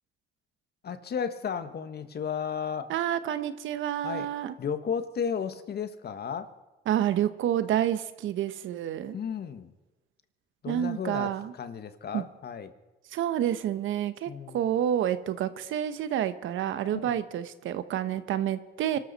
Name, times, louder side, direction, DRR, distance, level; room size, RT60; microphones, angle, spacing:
voice 1, 0.8-2.9 4.0-4.3 4.6-6.5 9.1-9.7 10.6-12.7 14.3-14.6 16.9-17.2, left 7 dB, 55° left, 10 dB, 1.4 m, -34 dB
voice 2, 2.9-4.5 6.9-9.2 10.7-11.5 12.1-12.2 13.1-19.0, right 10 dB, 80° right, 13 dB, 1.0 m, -29 dB
25.0 x 13.0 x 4.1 m, 1.1 s
cardioid pair, 90°, 20 cm